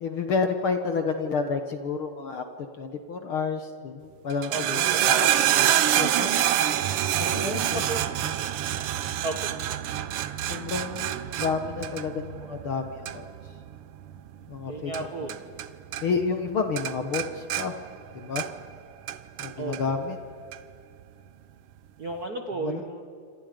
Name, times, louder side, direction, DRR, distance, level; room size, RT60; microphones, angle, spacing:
voice 1, 0.0-2.4 2.8-5.3 5.5-6.3 7.3-7.8 10.5-13.3 14.5-14.9 15.2-15.3 16.0-17.8 18.1-18.4 19.4-20.2 22.6-22.8, left 5 dB, 55° left, 6 dB, 1.6 m, -30 dB
sound 1, 4.3-15.7 15.9-16.5 16.8-18.7 19.1-19.8 20.5-20.6, right 12 dB, 80° right, 1.2 m, -27 dB
voice 2, 4.5-5.1 7.2-8.1 8.7-8.8 9.2-9.5 14.7-15.4 19.6-19.8 22.0-23.0, right 3 dB, 50° right, 4 dB, 1.2 m, -34 dB
27.5 x 26.5 x 5.2 m, 2.3 s
omnidirectional pair, 3.6 m